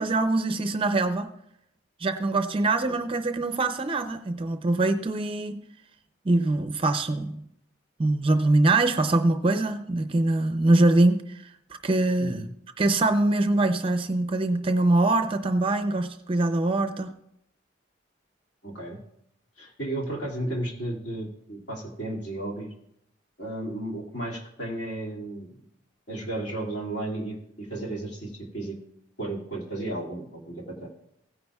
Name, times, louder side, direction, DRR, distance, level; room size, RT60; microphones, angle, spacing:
voice 1, 0.0-1.3 2.0-5.6 6.2-7.4 8.0-11.5 11.8-12.4 12.8-17.1, right 2 dB, 30° right, 8 dB, 0.5 m, -23 dB
voice 2, 12.2-12.5 18.6-19.0 19.6-22.7 23.4-25.5 26.1-28.8 29.2-30.9, right 1 dB, 65° left, -2 dB, 2.3 m, -33 dB
16.0 x 9.6 x 2.3 m, 0.76 s
head